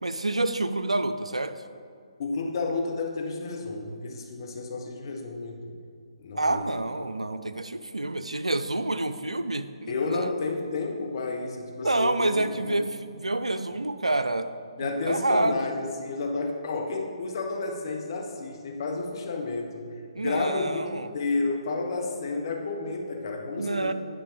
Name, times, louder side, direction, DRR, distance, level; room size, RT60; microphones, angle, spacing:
voice 1, 0.0-1.5 6.3-10.3 11.8-14.5 14.8-15.6 20.1-21.1 23.6-23.9, right 2 dB, 90° right, 10 dB, 0.5 m, -28 dB
voice 2, 2.2-5.8 6.2-6.7 9.9-12.8 14.8-23.9, left 3 dB, 45° left, 2 dB, 1.4 m, -31 dB
10.0 x 5.3 x 5.2 m, 2.3 s
figure-of-eight pair, 140°, 3 cm